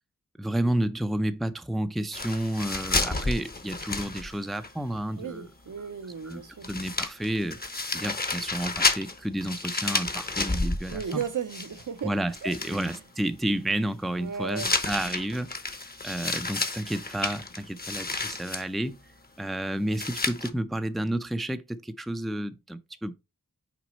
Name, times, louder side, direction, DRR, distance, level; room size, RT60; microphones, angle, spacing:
voice 1, 0.4-5.5 6.2-6.4 6.7-7.6 7.9-11.2 12.0-15.5 16.0-19.0 19.4-23.1, right 1 dB, ahead, 0.4 m, -31 dB
sound 1, 2.1-4.7 5.0-5.1 6.3-6.4 6.6-12.0 12.3-13.0 14.5-18.7 19.9-20.5, left 3 dB, 30° left, 0.8 m, -31 dB
voice 2, 5.2-6.7 10.9-12.1 12.4-12.8 14.2-14.7, right 7 dB, 65° right, 0.7 m, -35 dB
6.0 x 4.1 x 4.1 m
wide cardioid pair, 90°, 33 cm